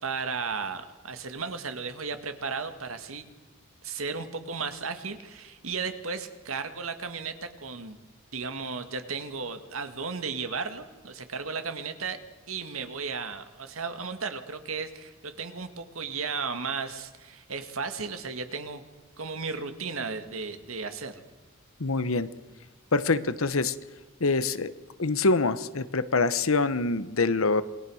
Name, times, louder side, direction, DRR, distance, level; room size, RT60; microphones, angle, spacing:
voice 1, 0.0-3.3 3.8-8.0 8.3-12.2 12.5-18.8 19.2-21.2, right 5 dB, 80° right, 8 dB, 2.0 m, -35 dB
voice 2, 21.8-22.3 22.9-23.7 24.2-24.7 25.0-27.6, left 3 dB, 75° left, 14 dB, 1.1 m, -25 dB
28.0 x 21.0 x 6.4 m, 1.3 s
head